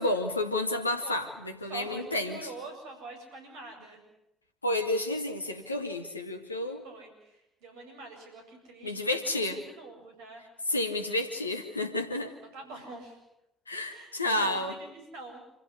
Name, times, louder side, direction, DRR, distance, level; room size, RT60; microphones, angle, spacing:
voice 1, 0.0-2.5 4.6-6.8 8.8-9.6 10.7-12.3 13.7-14.8, left 1 dB, 85° left, 6 dB, 2.2 m, -30 dB
voice 2, 1.7-4.0 6.8-10.4 12.5-13.2 13.8-15.4, right 3 dB, 65° right, 4 dB, 7.8 m, -45 dB
28.0 x 16.0 x 9.9 m, 0.89 s
figure-of-eight pair, 50°, 0 cm